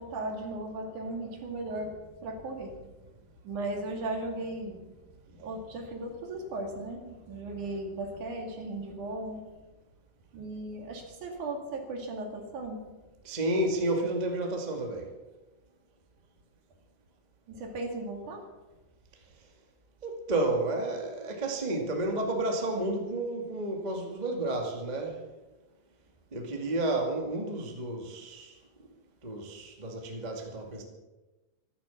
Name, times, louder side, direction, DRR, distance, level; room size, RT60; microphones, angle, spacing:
voice 1, 0.0-2.8 3.4-4.9 5.3-9.6 10.3-12.9 17.5-18.5, right 2 dB, 55° right, 2 dB, 3.4 m, -37 dB
voice 2, 13.2-15.1 20.0-25.2 26.3-28.5 29.2-30.8, right 2 dB, 35° right, 1 dB, 0.7 m, -31 dB
14.5 x 13.5 x 7.1 m, 1.1 s
omnidirectional pair, 4.8 m